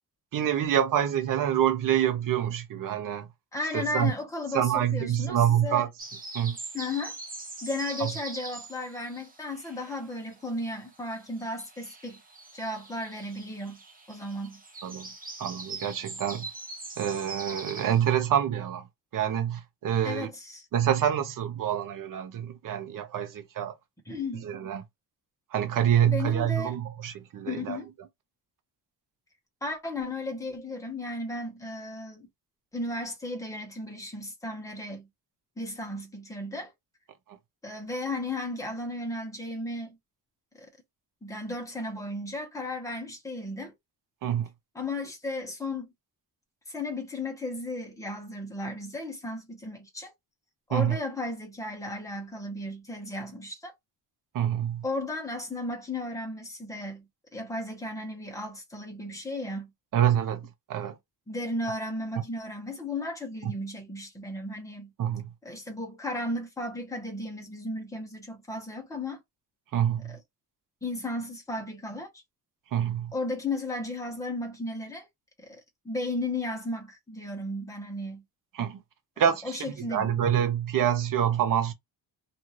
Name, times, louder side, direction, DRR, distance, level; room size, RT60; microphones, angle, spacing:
voice 1, 0.3-3.3 3.7-4.1 4.5-5.9 6.3-6.6 8.0-8.1 14.8-15.1 15.4-16.5 17.0-18.8 19.1-20.3 20.7-23.7 24.4-24.8 25.5-27.8 44.2-44.5 50.7-51.0 54.3-54.8 59.9-61.0 63.4-63.5 65.0-65.2 69.7-70.2 72.7-73.1 78.5-78.8 79.2-81.7, right 10 dB, 50° right, 0.7 m, -26 dB
voice 2, 3.5-5.8 6.7-7.2 7.6-12.2 12.5-13.8 14.1-14.6 20.0-20.7 24.1-24.4 26.1-26.7 27.5-27.9 29.6-32.3 32.7-35.1 35.6-36.7 37.6-40.0 40.6-40.7 41.2-43.7 44.7-45.9 46.7-50.1 50.7-53.7 54.8-59.7 61.3-64.9 65.4-69.2 70.1-70.2 70.8-72.1 73.1-75.1 75.4-75.6 75.8-78.2 79.2-80.3, left 2 dB, 10° left, 1.0 m, -35 dB
sound 1, 6.0-10.3 10.6-18.1, right 2 dB, 20° right, 0.9 m, -42 dB
2.6 x 2.6 x 3.0 m
cardioid pair, 150°, 42 cm